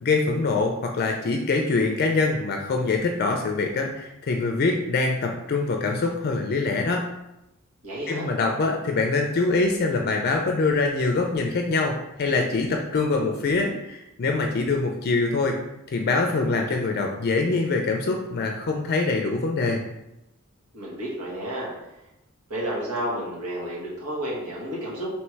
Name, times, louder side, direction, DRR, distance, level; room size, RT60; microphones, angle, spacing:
voice 1, 0.0-7.0 8.1-15.5 15.9-19.8, left 3 dB, 45° left, 2 dB, 0.4 m, -24 dB
voice 2, 7.8-8.3 20.7-21.7 22.5-25.1, right 1 dB, 80° right, -5 dB, 1.3 m, -31 dB
3.1 x 3.1 x 4.5 m, 0.90 s
head